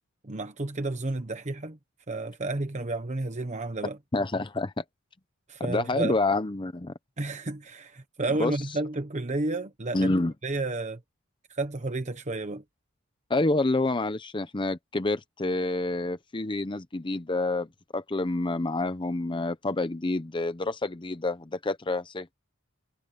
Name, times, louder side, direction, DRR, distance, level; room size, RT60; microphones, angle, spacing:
voice 1, 0.2-1.8 2.1-4.0 5.5-6.2 7.2-10.1 10.4-11.0 11.5-12.6, right 2 dB, 35° right, 1.1 m, -31 dB
voice 2, 4.1-4.8 5.6-6.9 8.4-8.5 9.9-10.3 13.3-22.3, left 2 dB, 25° left, 0.7 m, -28 dB
head